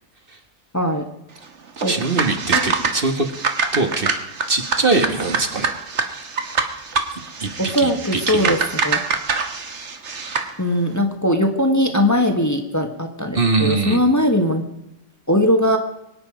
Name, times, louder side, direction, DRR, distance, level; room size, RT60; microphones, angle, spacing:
voice 1, 0.7-1.1 1.8-1.9 2.5-2.7 7.6-8.6 8.8-9.0 10.6-14.6 15.3-15.8, equal, 15° left, 4 dB, 1.4 m, -19 dB
sound 1, 1.8-10.5, right 5 dB, 70° right, 1.7 m, -25 dB
voice 2, 1.9-3.3 3.7-4.1 4.5-5.7 7.4-8.6 13.3-14.0, right 3 dB, 50° right, 6 dB, 1.7 m, -22 dB
23.5 x 9.8 x 5.0 m, 0.93 s
omnidirectional pair, 1.2 m